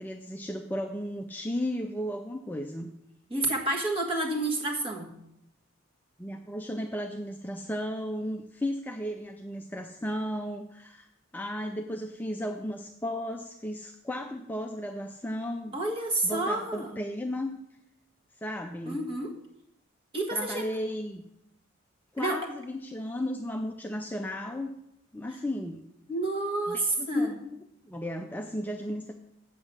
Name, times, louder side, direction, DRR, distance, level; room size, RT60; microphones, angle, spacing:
voice 1, 0.0-2.9 6.2-11.1 11.3-15.8 16.2-17.6 18.4-19.0 20.3-21.2 22.1-24.8 25.1-25.9 26.7-29.1, left 1 dB, 10° left, 3 dB, 0.4 m, -34 dB
voice 2, 3.3-5.1 15.7-17.0 18.9-19.3 20.1-20.7 22.2-22.4 26.1-27.3, right 2 dB, 25° right, 0 dB, 1.6 m, -29 dB
8.1 x 7.4 x 6.2 m, 0.80 s
head